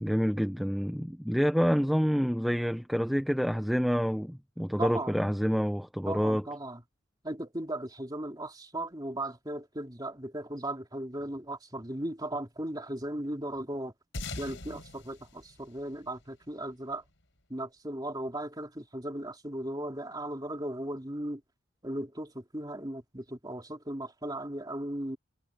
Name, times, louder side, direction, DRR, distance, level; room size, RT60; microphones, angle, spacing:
voice 1, 0.0-6.4, equal, ahead, 0.6 m, -28 dB
voice 2, 4.8-5.1 6.0-6.8 7.2-13.9 14.4-17.0 17.5-21.4 21.8-25.2, right 1 dB, 20° right, 3.0 m, -37 dB
sound 1, 14.1-16.9, left 2 dB, 60° left, 5.3 m, -42 dB
head